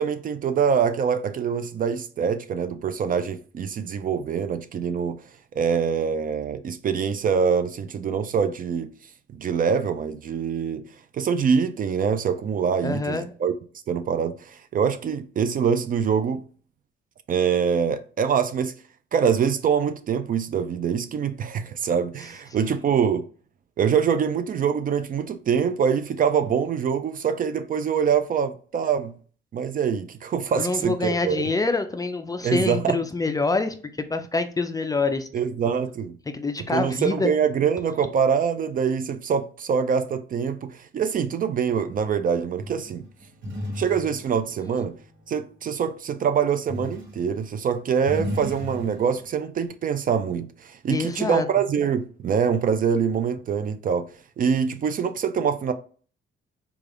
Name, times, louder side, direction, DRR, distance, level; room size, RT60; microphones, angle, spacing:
voice 1, 0.0-5.2 5.5-8.9 9.3-10.8 11.1-13.5 13.9-16.4 17.3-18.7 19.1-23.3 23.8-29.1 29.5-31.5 32.4-33.0 35.3-36.2 36.7-43.0 43.8-44.9 45.3-54.1 54.4-55.7, right 7 dB, 45° right, 0.4 m, -24 dB
voice 2, 12.8-13.3 22.5-22.7 30.5-35.3 36.3-37.3 50.9-51.5, left 3 dB, 20° left, 0.4 m, -26 dB
sound 1, 42.6-45.8 46.7-47.3 47.7-49.3, left 1 dB, 65° right, 1.3 m, -35 dB
3.3 x 2.4 x 3.7 m
cardioid pair, 90°, 20 cm